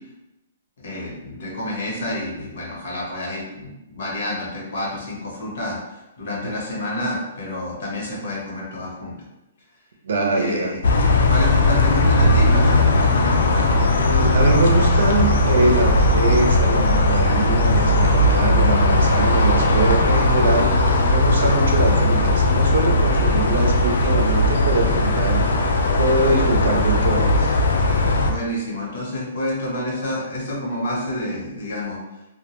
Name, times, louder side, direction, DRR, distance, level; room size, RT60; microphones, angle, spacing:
voice 1, 0.8-5.8 6.2-9.1 10.3-10.8 11.3-13.8 28.2-32.0, left 1 dB, 60° left, -3 dB, 1.0 m, -29 dB
voice 2, 10.0-10.7 14.0-25.4 26.0-27.5, right 2 dB, 80° right, 1 dB, 0.5 m, -23 dB
sound 1, 10.8-28.3, left 2 dB, 85° left, 0.4 m, -18 dB
2.2 x 2.2 x 2.9 m, 0.95 s
hypercardioid pair, 165°, 0 cm